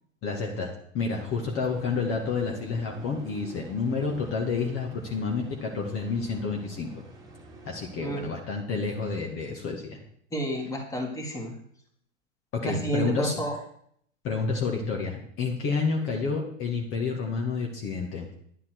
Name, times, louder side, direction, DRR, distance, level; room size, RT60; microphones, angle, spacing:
voice 1, 0.2-6.9 7.7-10.0 12.5-13.4 14.2-18.3, left 4 dB, 35° left, 1 dB, 2.0 m, -29 dB
sound 1, 1.1-8.3, right 1 dB, 10° right, 2.1 m, -47 dB
voice 2, 10.3-11.5 12.6-13.6, right 1 dB, 10° left, 0 dB, 2.4 m, -30 dB
10.5 x 9.5 x 4.7 m, 0.66 s
hypercardioid pair, 115°, 38 cm